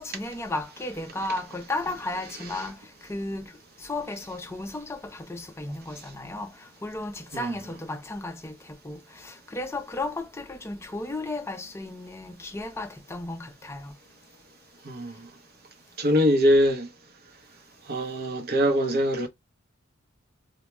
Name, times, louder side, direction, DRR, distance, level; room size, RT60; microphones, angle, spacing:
voice 1, 0.0-3.5 3.8-13.9, left 2 dB, 15° left, 0.4 m, -34 dB
voice 2, 16.0-16.9 17.9-19.3, equal, 50° right, 0.7 m, -22 dB
2.2 x 2.1 x 2.9 m
head